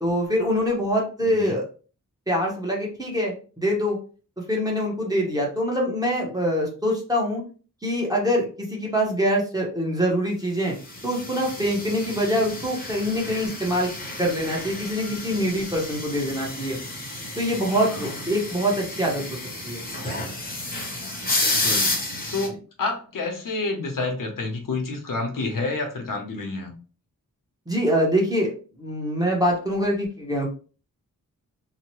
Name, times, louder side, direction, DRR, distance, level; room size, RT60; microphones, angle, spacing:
voice 1, 0.0-1.6 2.3-4.0 4.5-7.4 7.8-10.7 11.0-13.9 14.2-16.8 17.4-19.2 19.6-19.8 27.7-28.5 28.8-30.5, equal, 10° right, -3 dB, 0.7 m, -24 dB
voice 2, 1.2-1.6 17.7-18.1 21.4-26.7, left 3 dB, 70° left, 3 dB, 0.8 m, -29 dB
sound 1, 10.9-22.5, left 2 dB, 25° left, 0.7 m, -31 dB
2.8 x 2.0 x 2.9 m, 0.37 s
wide cardioid pair, 165°, 34 cm